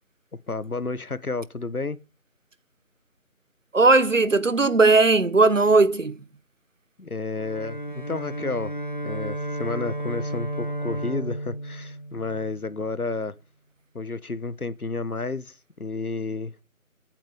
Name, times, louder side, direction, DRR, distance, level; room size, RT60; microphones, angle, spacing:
voice 1, 0.5-2.0 7.0-8.7 9.0-13.4 13.9-16.6, left 3 dB, 80° left, 1.3 m, -31 dB
voice 2, 3.7-6.1, right 3 dB, 60° right, 1.1 m, -18 dB
Bowed string instrument, 7.3-12.8, right 1 dB, 35° left, 0.8 m, -33 dB
15.0 x 9.2 x 5.3 m
figure-of-eight pair, 165°, 43 cm